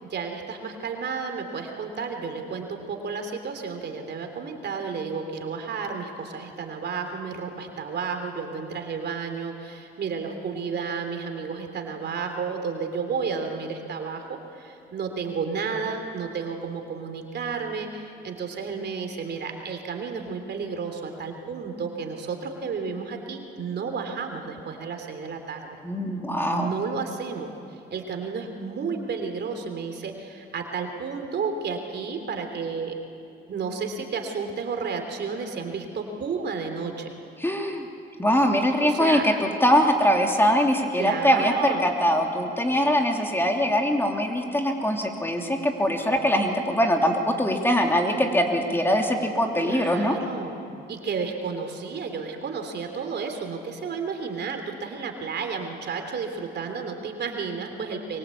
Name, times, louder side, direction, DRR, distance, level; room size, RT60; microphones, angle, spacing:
voice 1, 0.0-25.8 26.5-32.9 33.5-37.1 38.8-39.3 41.0-41.8 49.6-58.2, right 5 dB, 60° right, 5 dB, 3.3 m, -32 dB
voice 2, 25.8-26.7 37.4-37.9 38.2-50.1, equal, 10° left, 2 dB, 3.0 m, -22 dB
23.5 x 23.0 x 8.6 m, 2.6 s
cardioid pair, 90°, 20 cm